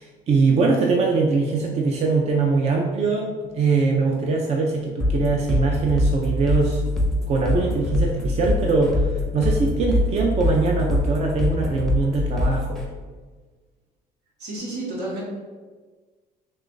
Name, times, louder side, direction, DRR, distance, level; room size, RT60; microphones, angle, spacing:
voice 1, 0.0-6.8 7.3-12.9, right 4 dB, 40° right, 0 dB, 0.4 m, -22 dB
sound 1, 5.0-12.8, left 1 dB, ahead, 0.6 m, -23 dB
voice 2, 14.4-15.2, right 2 dB, 80° right, -4 dB, 1.2 m, -30 dB
3.2 x 2.4 x 3.8 m, 1.4 s
cardioid pair, 110°, 17 cm